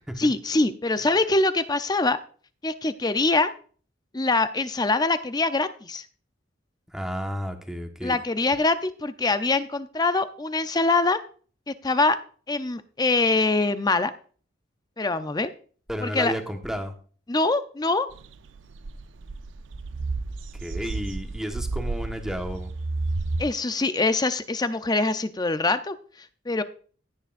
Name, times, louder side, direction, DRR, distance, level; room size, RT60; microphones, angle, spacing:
voice 1, 0.2-2.2 2.6-3.5 4.1-6.0 8.0-11.2 11.7-12.2 12.5-14.1 15.0-15.5 16.0-16.3 17.3-18.1 23.4-25.9 26.5-26.6, left 3 dB, 20° left, 11 dB, 0.6 m, -24 dB
voice 2, 6.9-8.2 15.9-16.9 20.5-22.7, equal, 5° right, 4 dB, 1.2 m, -32 dB
sound 1, 18.1-23.4, right 3 dB, 70° right, 0.5 m, -32 dB
16.0 x 9.4 x 2.5 m, 0.42 s
head